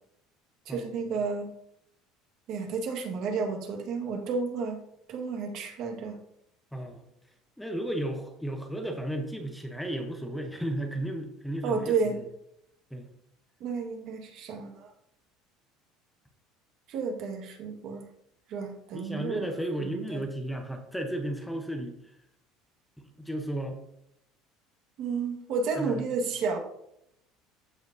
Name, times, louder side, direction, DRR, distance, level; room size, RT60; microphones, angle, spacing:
voice 1, 0.7-1.5 2.5-4.8 5.1-6.2 11.6-12.2 13.6-14.9 16.9-18.1 18.5-19.5 19.8-20.2 25.0-26.6, right 4 dB, 50° right, 4 dB, 1.6 m, -31 dB
voice 2, 6.7-7.0 7.6-12.2 12.9-13.0 18.9-21.9 23.0-23.8 25.7-26.1, right 1 dB, ahead, 4 dB, 0.9 m, -34 dB
15.0 x 5.1 x 2.7 m, 0.75 s
cardioid pair, 165°, 0 cm